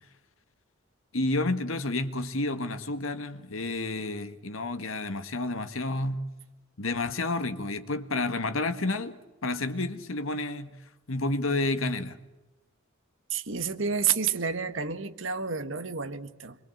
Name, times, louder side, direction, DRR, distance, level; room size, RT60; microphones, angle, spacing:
voice 1, 1.1-6.3 6.8-10.7 11.1-12.2, left 2 dB, 85° left, 1.7 m, -30 dB
voice 2, 13.3-16.6, right 6 dB, 65° right, 1.7 m, -30 dB
26.0 x 23.0 x 8.0 m
head